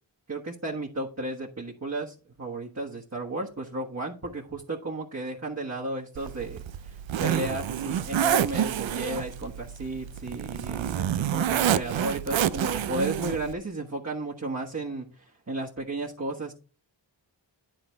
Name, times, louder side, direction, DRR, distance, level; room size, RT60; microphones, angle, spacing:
voice 1, 0.3-16.5, right 2 dB, 35° right, -3 dB, 1.5 m, -34 dB
Zipper (clothing), 6.2-13.5, right 10 dB, 85° right, 0.5 m, -28 dB
11.0 x 3.9 x 4.6 m, 0.36 s
wide cardioid pair, 55°, 45 cm